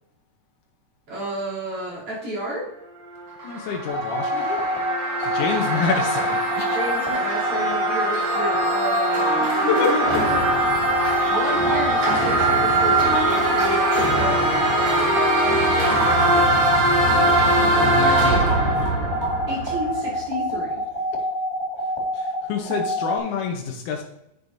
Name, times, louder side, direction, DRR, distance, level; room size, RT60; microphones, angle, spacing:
voice 1, 1.1-2.7 6.6-10.4 11.0-15.2 19.5-20.8, equal, 45° right, -8 dB, 3.9 m, -31 dB
sound 1, 3.2-20.1, right 1 dB, 85° right, 4.8 m, -21 dB
voice 2, 3.4-4.7 5.3-6.8 9.7-9.9 16.2-16.9 17.8-18.7 22.1-24.0, left 6 dB, 80° left, 1 dB, 2.3 m, -28 dB
sound 2, 3.9-23.2, equal, 20° right, 0.6 m, -27 dB
sound 3, 11.0-11.1 11.3-12.1 12.4-13.2 13.5-13.6 13.8-13.9 14.2-14.3 14.6-14.7 14.9-15.0 15.3-15.4 15.6-15.7 16.0-16.1 16.4-16.8 17.1-17.2 17.4-17.5 17.8-17.9 18.1-18.9 19.2-19.3, right 2 dB, 10° left, 2.4 m, -31 dB
9.7 x 8.4 x 2.6 m, 0.87 s
omnidirectional pair, 3.6 m